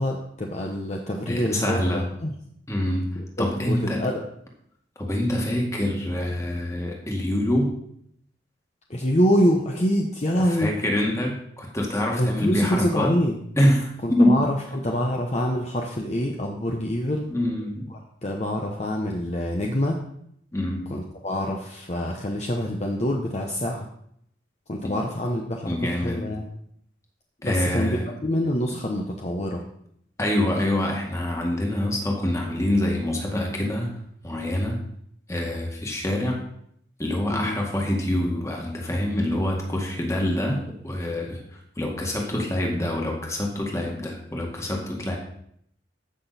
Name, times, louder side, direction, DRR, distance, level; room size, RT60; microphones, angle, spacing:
voice 1, 0.0-2.3 3.1-4.2 8.9-10.7 12.1-13.4 14.0-17.3 17.9-20.0 20.9-23.9 24.7-26.5 27.4-29.6 37.3-37.6, equal, 35° left, 1 dB, 0.9 m, -26 dB
voice 2, 1.3-2.0 2.7-3.1 3.4-4.1 5.0-7.7 10.6-13.1 13.6-14.4 17.3-17.9 20.5-20.8 24.8-24.9 25.7-26.2 27.4-28.1 30.2-33.9 34.2-34.8 35.3-36.4 37.0-40.6 40.8-45.2, left 1 dB, 15° left, 0 dB, 1.9 m, -25 dB
15.0 x 6.1 x 4.2 m, 0.71 s
head